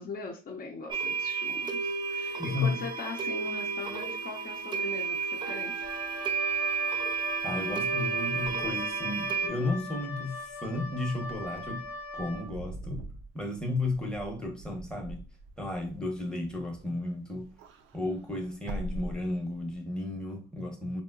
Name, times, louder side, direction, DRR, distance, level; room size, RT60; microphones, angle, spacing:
voice 1, 0.0-5.9, left 4 dB, 45° left, 0.7 m, -41 dB
sound 1, 0.9-9.5, right 5 dB, 25° right, 0.5 m, -32 dB
voice 2, 2.4-2.8 7.4-11.9 12.1-13.0 13.3-15.2 15.6-17.5 17.9-21.0, left 2 dB, 5° left, 0.8 m, -33 dB
Wind instrument woodwind instrument, 5.8-12.5, left 2 dB, 85° left, 0.8 m, -39 dB
Wind / Car, 11.2-17.0 17.3-19.8, right 1 dB, 85° right, 0.4 m, -43 dB
3.8 x 2.1 x 2.3 m
cardioid pair, 90°, 20 cm